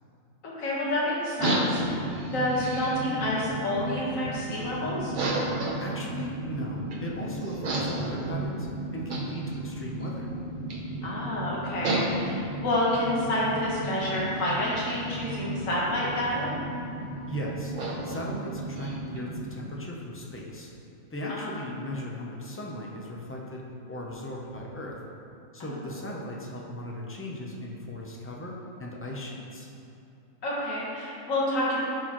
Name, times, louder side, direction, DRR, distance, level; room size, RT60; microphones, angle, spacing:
voice 1, 0.4-2.0 2.3-5.1 11.0-16.5 21.4-21.5 25.7-25.8 30.4-31.8, left 1 dB, 70° left, -7 dB, 1.7 m, -28 dB
sound 1, 1.4-19.5, right 2 dB, 45° right, 0.7 m, -33 dB
voice 2, 5.8-10.3 17.3-17.7 18.0-20.7 21.1-25.0 25.5-28.5 28.8-29.7, left 1 dB, 20° left, -2 dB, 0.3 m, -37 dB
11.0 x 4.2 x 3.1 m, 2.7 s
omnidirectional pair, 1.4 m